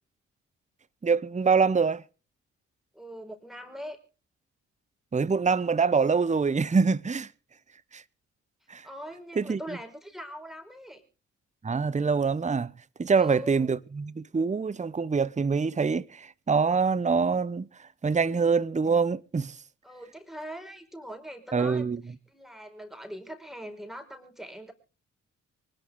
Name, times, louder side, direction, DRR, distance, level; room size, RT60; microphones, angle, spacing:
voice 1, 1.0-2.0 5.1-7.3 7.9-8.0 8.7-8.8 9.4-9.6 11.6-12.7 13.0-17.6 18.0-19.5 21.5-22.0, right 5 dB, 20° right, 0.9 m, -25 dB
voice 2, 2.9-4.0 8.8-11.0 13.1-13.7 19.8-24.7, equal, ahead, 5.0 m, -42 dB
24.5 x 11.5 x 3.7 m
hypercardioid pair, 40°, 35 cm